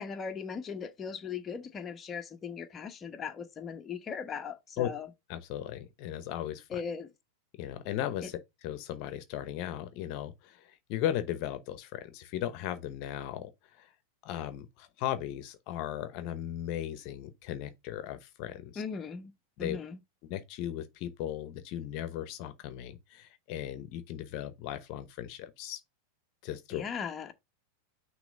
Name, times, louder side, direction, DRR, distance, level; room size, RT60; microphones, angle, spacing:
voice 1, 0.0-5.1 6.7-7.1 18.8-19.3 19.6-20.0 26.7-27.3, left 6 dB, 25° left, 1.0 m, -38 dB
voice 2, 5.3-6.8 7.6-13.5 13.8-13.9 14.2-18.8 19.6-19.8 20.2-25.8 26.4-26.8, left 11 dB, 55° left, 0.9 m, -37 dB
6.0 x 3.1 x 5.2 m
hypercardioid pair, 110°, 0 cm